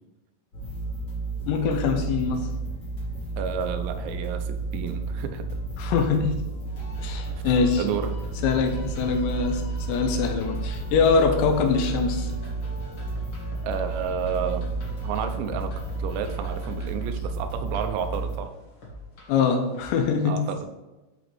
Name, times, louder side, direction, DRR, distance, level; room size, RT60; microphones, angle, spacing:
sound 1, 0.5-18.4, right 3 dB, 35° left, 1.9 m, -32 dB
voice 1, 1.5-2.5 5.8-6.4 7.0-7.8 8.4-12.3 19.3-20.5, left 5 dB, 85° left, 4 dB, 3.1 m, -23 dB
voice 2, 3.4-5.5 7.8-8.1 13.6-14.6 15.0-15.7 16.0-18.5 20.2-20.7, right 7 dB, 85° right, 8 dB, 2.9 m, -31 dB
sound 2, 6.6-20.0, equal, 50° left, 1.5 m, -43 dB
12.5 x 5.0 x 3.2 m, 1.1 s
omnidirectional pair, 5.1 m